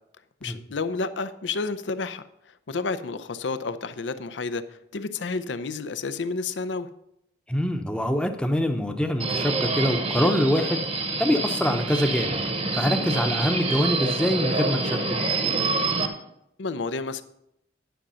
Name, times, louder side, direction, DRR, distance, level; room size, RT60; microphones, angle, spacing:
voice 1, 0.4-2.2 2.7-6.9 16.6-17.2, left 4 dB, 80° left, 13 dB, 0.6 m, -30 dB
voice 2, 7.5-12.4 12.7-15.0, equal, 5° left, 5 dB, 0.7 m, -24 dB
Subway metro underground, 9.2-16.1, right 3 dB, 35° right, 0.9 m, -27 dB
10.0 x 6.3 x 5.6 m, 0.80 s
head